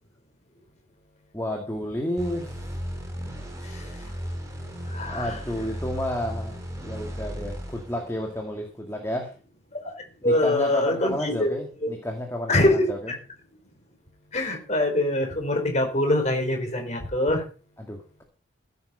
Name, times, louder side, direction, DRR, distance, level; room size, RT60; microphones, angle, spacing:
voice 1, 1.3-2.5 5.0-9.3 10.2-13.1 17.8-18.2, equal, 15° left, 2 dB, 2.3 m, -31 dB
sound 1, 2.2-8.6, equal, 15° right, 3.3 m, -36 dB
voice 2, 4.8-5.4 9.7-9.8 10.2-11.5 11.8-11.9 12.5-12.9 14.3-17.4, left 1 dB, 35° left, 3 dB, 4.5 m, -24 dB
15.5 x 8.4 x 5.6 m, 0.36 s
head